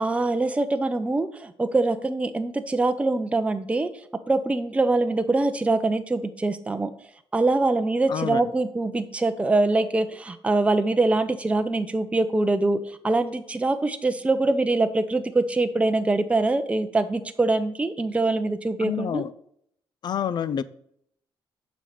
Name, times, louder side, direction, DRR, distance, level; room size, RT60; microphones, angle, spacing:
voice 1, 0.0-3.9 4.3-6.9 7.3-19.2, right 2 dB, 15° right, 8 dB, 0.7 m, -24 dB
voice 2, 8.1-8.4 18.8-19.3 20.0-20.6, left 8 dB, 55° left, 16 dB, 0.5 m, -27 dB
7.3 x 5.3 x 6.6 m, 0.68 s
cardioid pair, 115°, 9 cm